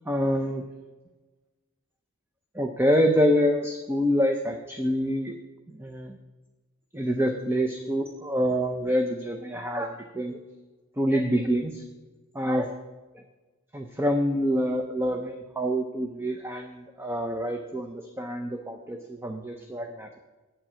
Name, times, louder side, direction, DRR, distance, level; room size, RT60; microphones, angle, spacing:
voice 1, 0.1-0.6 2.5-5.3 5.7-6.1 6.9-10.4 11.0-11.8 12.3-12.7 13.7-20.2, equal, 10° right, 4 dB, 0.5 m, -26 dB
8.7 x 7.5 x 5.7 m, 1.2 s
head